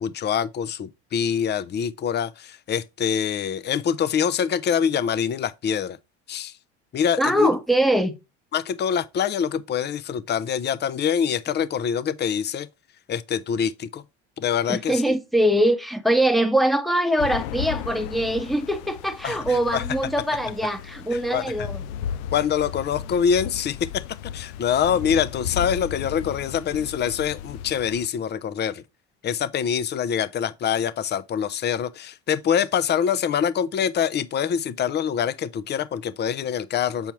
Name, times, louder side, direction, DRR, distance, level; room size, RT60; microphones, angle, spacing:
voice 1, 0.0-6.0 6.3-6.5 6.9-7.6 8.5-12.7 13.1-14.0 14.4-15.2 19.2-19.8 21.3-21.4 22.3-23.8 24.3-28.8 29.2-37.1, left 8 dB, 35° left, 0.6 m, -25 dB
voice 2, 7.2-8.2 14.7-21.8, right 1 dB, ahead, 1.1 m, -22 dB
sound 1, 17.2-28.1, left 9 dB, 80° left, 0.5 m, -35 dB
7.1 x 4.4 x 3.1 m
supercardioid pair, 85°, 31 cm